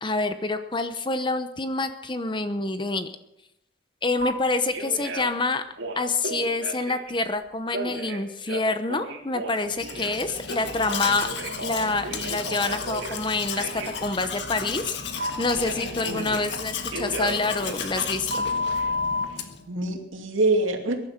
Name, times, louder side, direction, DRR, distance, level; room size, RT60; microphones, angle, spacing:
voice 1, 0.0-3.1 4.0-5.6 6.0-11.3 11.6-14.9 15.4-18.5, left 3 dB, 25° left, 10 dB, 0.8 m, -27 dB
Telephone, 4.2-4.3 4.7-5.4 5.7-7.1 7.7-10.2 10.5-13.2 13.6-13.9 15.2-16.6 16.9-19.3, equal, 70° right, 3.6 m, -32 dB
Domestic sounds home sounds, 9.6-19.7, left 5 dB, 60° left, 1.6 m, -34 dB
voice 2, 18.7-19.0 19.3-19.4 19.7-21.0, right 2 dB, 90° right, 3 dB, 2.7 m, -26 dB
21.5 x 11.5 x 5.9 m, 0.84 s
head